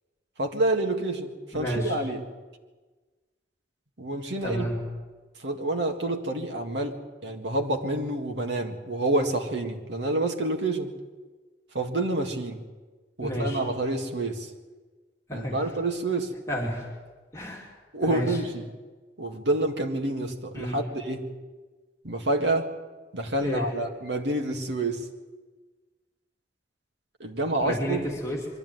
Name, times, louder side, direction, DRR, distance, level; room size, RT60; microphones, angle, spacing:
voice 1, 0.4-2.2 4.0-4.7 5.4-10.9 11.7-12.6 13.2-14.5 15.3-16.3 17.9-18.7 19.2-21.3 22.0-22.7 23.1-25.1 27.2-28.0, right 2 dB, 90° right, 3 dB, 2.0 m, -28 dB
voice 2, 1.5-2.0 4.4-4.8 13.2-13.6 15.3-15.6 16.5-16.9 17.3-17.7 18.0-18.4 20.5-20.8 23.4-23.7 27.6-28.4, equal, 15° left, -2 dB, 2.8 m, -30 dB
22.5 x 13.0 x 9.3 m, 1.3 s
head